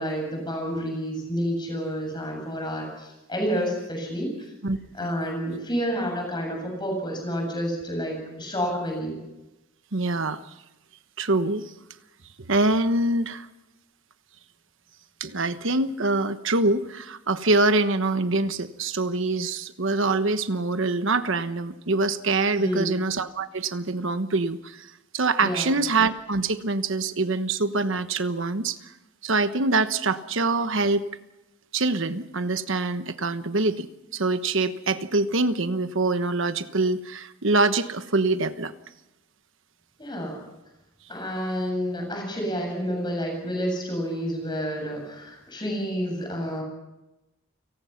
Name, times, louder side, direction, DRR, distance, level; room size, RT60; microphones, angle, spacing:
voice 1, 0.0-4.5 5.0-9.2 22.6-23.0 25.4-25.8 40.0-40.4 41.1-46.6, equal, 20° left, 2 dB, 7.7 m, -29 dB
voice 2, 9.9-10.4 11.2-11.7 12.4-13.5 15.2-28.8 29.2-31.0 31.7-38.7, right 3 dB, 60° right, 11 dB, 1.2 m, -24 dB
30.0 x 18.5 x 5.9 m, 0.98 s
head